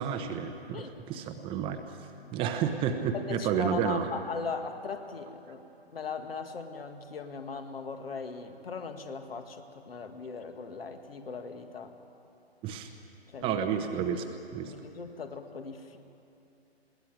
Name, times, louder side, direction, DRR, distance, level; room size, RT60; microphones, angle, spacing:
voice 1, 0.0-1.8 2.3-4.1 12.6-12.9 13.4-14.3 14.5-14.7, right 8 dB, 15° right, 6 dB, 0.9 m, -30 dB
voice 2, 0.7-1.3 3.1-11.9 13.3-13.6 14.6-16.0, left 5 dB, 65° left, 6 dB, 2.1 m, -39 dB
21.5 x 17.0 x 9.1 m, 2.8 s
figure-of-eight pair, 130°, 32 cm